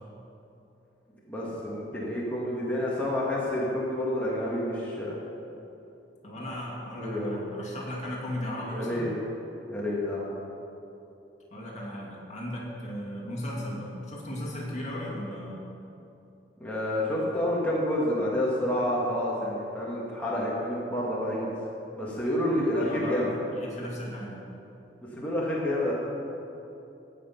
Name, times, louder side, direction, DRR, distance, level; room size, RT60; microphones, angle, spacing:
voice 1, 1.3-5.2 7.0-7.4 8.7-9.1 9.7-10.3 16.6-21.5 22.0-23.3 25.1-25.9, left 1 dB, 10° left, -7 dB, 1.6 m, -29 dB
voice 2, 6.2-9.1 11.5-15.6 22.8-24.4, left 1 dB, 40° left, -3 dB, 2.3 m, -36 dB
16.5 x 6.0 x 5.7 m, 2.9 s
head